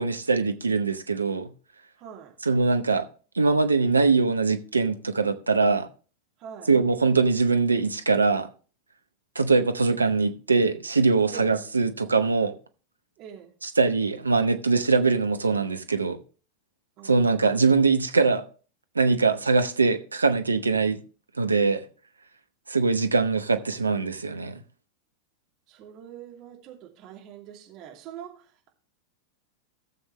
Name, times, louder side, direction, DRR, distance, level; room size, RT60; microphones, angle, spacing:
voice 1, 0.0-1.5 2.5-3.0 3.3-5.9 6.7-8.5 9.3-12.5 13.6-16.2 17.0-18.4 18.9-21.0 21.4-21.8 22.7-24.6, right 4 dB, 80° right, 0.9 m, -22 dB
voice 2, 2.0-2.3 6.4-6.7 11.3-11.6 13.2-13.6 17.0-17.4 25.7-28.7, right 9 dB, 40° right, 2.5 m, -43 dB
16.5 x 7.2 x 3.1 m
figure-of-eight pair, 90°, 0 cm